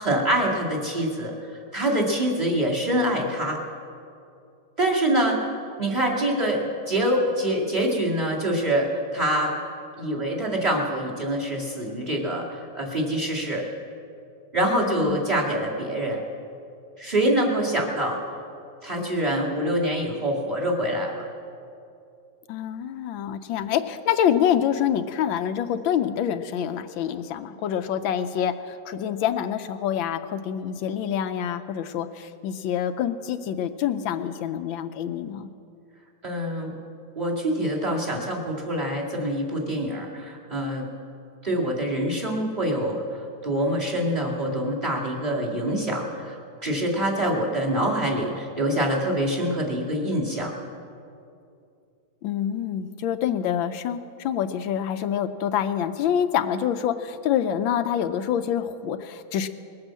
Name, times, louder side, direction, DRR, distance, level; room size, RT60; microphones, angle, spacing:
voice 1, 0.0-3.6 4.8-5.5 5.8-9.6 10.0-13.6 14.5-16.2 17.0-18.2 18.8-21.3 36.2-36.7 37.2-40.9 41.4-43.0 43.4-50.6, right 1 dB, 20° right, -1 dB, 2.2 m, -25 dB
voice 2, 22.5-35.5 52.2-59.5, left 9 dB, 80° left, 9 dB, 1.4 m, -26 dB
20.0 x 9.0 x 7.5 m, 2.5 s
omnidirectional pair, 2.1 m